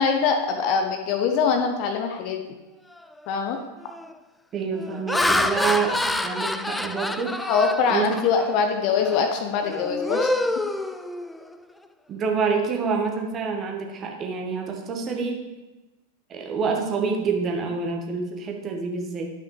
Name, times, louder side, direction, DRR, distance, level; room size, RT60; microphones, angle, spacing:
voice 1, 0.0-2.4 3.3-3.6 7.4-10.3, left 6 dB, 45° left, 4 dB, 0.8 m, -23 dB
Laughter, 3.0-3.3 3.8-4.1 4.7-8.6 9.0-9.2 9.6-11.6, left 1 dB, 5° left, 0.3 m, -27 dB
voice 2, 4.5-7.4 7.9-8.2 12.1-15.4 16.3-19.3, right 5 dB, 30° right, 2 dB, 1.3 m, -27 dB
12.0 x 5.6 x 3.2 m, 1.1 s
figure-of-eight pair, 90°, 0 cm